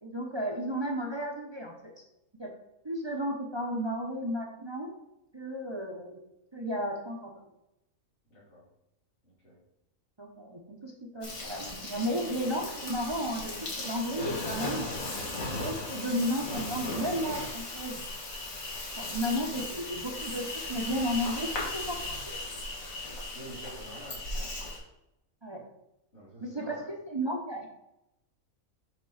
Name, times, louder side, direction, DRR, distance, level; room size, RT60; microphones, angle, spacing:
voice 1, 0.0-1.9 2.3-2.5 2.8-4.9 5.3-6.2 6.5-7.3 10.2-15.0 15.6-18.1 19.0-22.0 22.3-22.4 25.4-25.6 26.4-27.7, equal, 25° right, 0 dB, 0.7 m, -33 dB
voice 2, 8.3-8.7 9.2-9.6 23.3-24.2 26.1-26.9, right 1 dB, 55° left, -9 dB, 2.5 m, -48 dB
Insect, 11.2-24.8, left 2 dB, 90° left, 2.0 m, -37 dB
6.0 x 3.7 x 5.6 m, 0.87 s
omnidirectional pair, 1.4 m